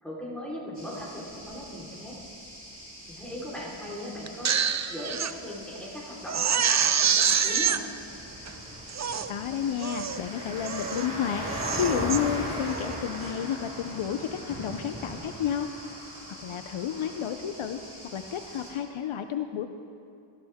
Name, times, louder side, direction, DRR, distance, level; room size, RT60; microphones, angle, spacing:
voice 1, 0.0-2.2 3.1-4.6 4.9-7.8, left 1 dB, ahead, -7 dB, 3.8 m, -39 dB
sound 1, 0.7-18.7, equal, 15° right, 3.9 m, -40 dB
Crying sobbing, 4.3-5.3 5.8-5.9 6.3-7.8 8.5-8.6 8.9-9.3 9.8-10.2 10.6-11.1 11.4-12.2 12.7-13.0, right 7 dB, 35° right, 0.4 m, -26 dB
sound 2, 8.1-15.3, right 1 dB, 50° right, 3.6 m, -48 dB
voice 2, 9.3-15.7 16.3-17.8 18.1-19.7, left 9 dB, 70° left, 7 dB, 0.6 m, -31 dB
17.5 x 14.0 x 3.6 m, 2.5 s
wide cardioid pair, 120°, 50 cm